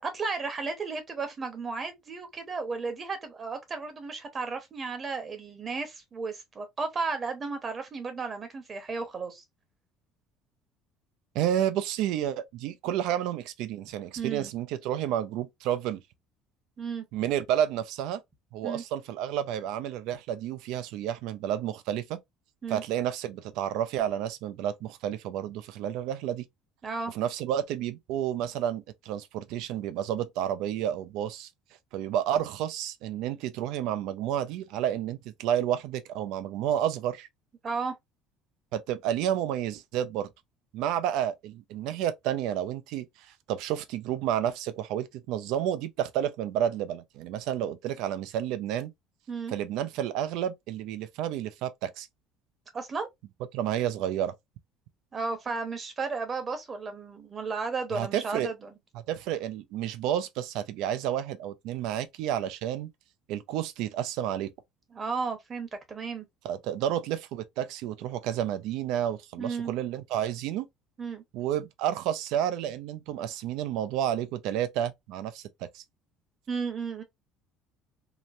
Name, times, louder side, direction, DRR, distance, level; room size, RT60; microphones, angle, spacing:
voice 1, 0.0-9.4 14.2-14.5 16.8-17.0 18.6-18.8 22.6-22.8 26.8-27.1 37.6-37.9 49.3-49.5 52.7-53.1 55.1-58.7 64.9-66.3 69.4-69.7 71.0-71.2 76.5-77.0, right 4 dB, 30° right, 1.0 m, -34 dB
voice 2, 11.3-16.0 17.1-18.2 18.5-22.2 22.7-26.4 27.1-31.5 31.9-37.3 38.7-40.3 40.7-43.1 43.5-48.9 49.5-52.1 53.5-54.3 57.9-58.5 58.9-62.9 63.3-64.5 66.4-70.7 71.3-75.5 75.7-75.8, right 10 dB, 75° right, 0.4 m, -30 dB
2.9 x 2.1 x 2.5 m
supercardioid pair, 100°, 0 cm